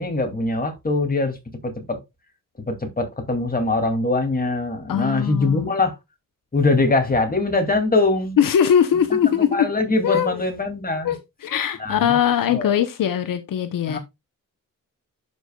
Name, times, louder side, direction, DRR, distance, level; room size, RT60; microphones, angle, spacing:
voice 1, 0.0-1.4 1.6-2.0 2.7-6.0 6.5-8.4 9.1-11.1 11.8-12.2 12.5-12.7 13.9-14.0, left 2 dB, 25° left, 2.5 m, -22 dB
voice 2, 4.9-5.7 8.4-9.7 10.0-10.4 11.0-14.0, left 9 dB, 75° left, 0.8 m, -21 dB
11.5 x 5.4 x 2.2 m
cardioid pair, 80°, 33 cm